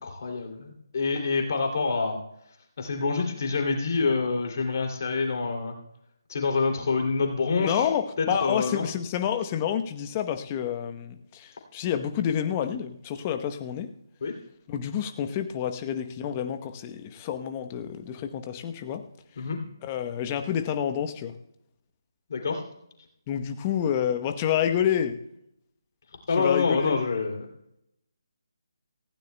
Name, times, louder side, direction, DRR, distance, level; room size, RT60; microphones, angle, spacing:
voice 1, 0.0-2.2 2.8-5.8 6.3-7.9 8.2-8.8 14.2-14.3 19.4-19.6 22.3-22.6 26.3-27.5, left 4 dB, 50° left, 2 dB, 2.7 m, -26 dB
voice 2, 7.6-13.9 14.7-19.0 19.8-21.3 23.3-25.2 26.3-27.1, left 9 dB, 25° left, 8 dB, 0.9 m, -29 dB
18.5 x 15.5 x 2.2 m, 0.79 s
figure-of-eight pair, 150°, 2 cm